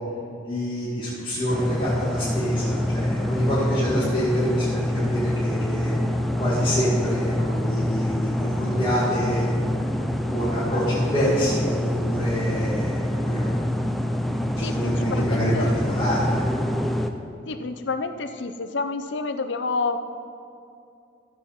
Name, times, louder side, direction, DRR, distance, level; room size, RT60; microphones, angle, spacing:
voice 1, 0.5-5.9 6.4-9.5 10.3-13.5 14.6-16.4, equal, 25° left, -10 dB, 2.1 m, -26 dB
sound 1, 1.5-17.1, left 1 dB, ahead, 0.4 m, -25 dB
voice 2, 14.6-15.7 17.5-20.0, left 3 dB, 70° left, 8 dB, 0.6 m, -29 dB
15.0 x 7.6 x 4.3 m, 2.6 s
head